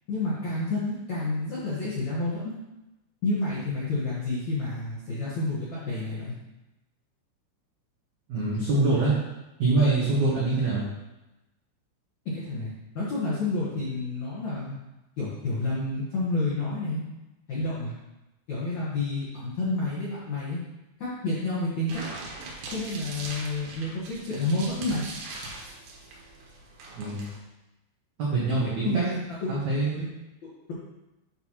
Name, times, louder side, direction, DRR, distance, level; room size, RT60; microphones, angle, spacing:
voice 1, 0.1-2.5 3.2-6.3 12.2-14.7 15.2-17.0 17.5-17.9 18.5-20.6 21.0-22.0 22.7-25.1 28.8-30.1, left 2 dB, 80° left, -8 dB, 1.6 m, -30 dB
voice 2, 8.3-9.2 9.6-10.9 26.9-27.2 28.2-29.2 29.5-30.0, right 3 dB, 85° right, -7 dB, 1.6 m, -24 dB
sound 1, 21.9-27.4, right 2 dB, 70° right, 2.8 m, -41 dB
9.0 x 3.1 x 5.7 m, 0.99 s
omnidirectional pair, 5.7 m